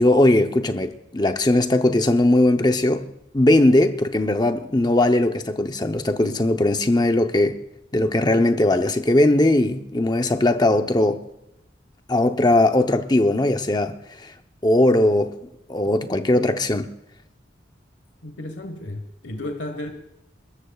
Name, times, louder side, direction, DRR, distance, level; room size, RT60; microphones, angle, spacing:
voice 1, 0.0-3.1 3.3-7.6 7.9-11.3 12.1-14.3 14.6-15.4 15.7-16.9, left 1 dB, 20° left, 0.8 m, -19 dB
voice 2, 18.2-19.9, left 1 dB, 85° left, 1.4 m, -33 dB
29.5 x 13.5 x 2.4 m
head